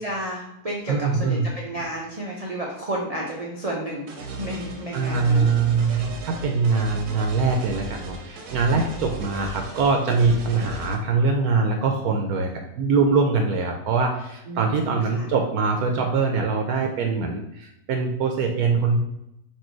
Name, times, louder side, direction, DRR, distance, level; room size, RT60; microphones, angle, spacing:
voice 1, 0.0-4.1 4.4-5.5 5.9-6.1 8.7-8.9 14.5-15.2, right 1 dB, 50° right, -2 dB, 0.4 m, -32 dB
voice 2, 0.9-1.5 4.9-12.5 12.8-19.0, right 4 dB, 75° right, 3 dB, 1.0 m, -23 dB
sound 1, 4.1-11.0, right 2 dB, 90° right, 1.4 m, -36 dB
4.4 x 2.6 x 4.5 m, 0.83 s
omnidirectional pair, 1.7 m